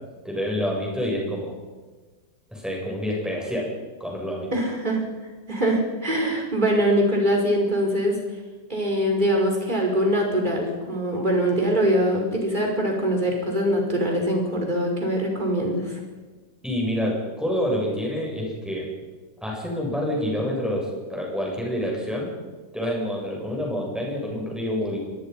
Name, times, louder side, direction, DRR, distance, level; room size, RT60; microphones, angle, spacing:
voice 1, 0.2-1.5 2.5-3.7 4.0-4.5 16.6-18.9 19.4-22.3 22.7-25.0, equal, ahead, -2 dB, 7.9 m, -27 dB
voice 2, 4.5-5.0 5.5-8.1 8.7-15.9, equal, 25° right, 1 dB, 5.5 m, -23 dB
24.0 x 20.5 x 5.7 m, 1.3 s
omnidirectional pair, 2.0 m